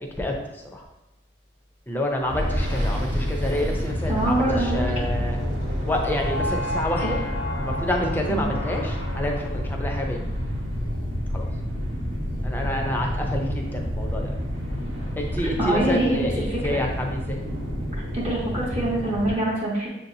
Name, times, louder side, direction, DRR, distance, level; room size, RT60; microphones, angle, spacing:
voice 1, 0.2-0.8 1.9-5.4 5.8-7.2 7.6-10.3 11.3-11.5 12.4-14.4 15.2-17.4, left 1 dB, 10° left, 1 dB, 0.5 m, -28 dB
sound 1, 2.3-19.3, equal, 90° right, 1.1 m, -28 dB
voice 2, 4.1-4.8 8.3-8.4 15.6-16.8 17.9-19.9, right 1 dB, 35° right, -7 dB, 0.8 m, -25 dB
sound 2, 4.7-10.8, left 2 dB, 90° left, 0.5 m, -35 dB
7.0 x 2.7 x 2.7 m, 0.96 s
head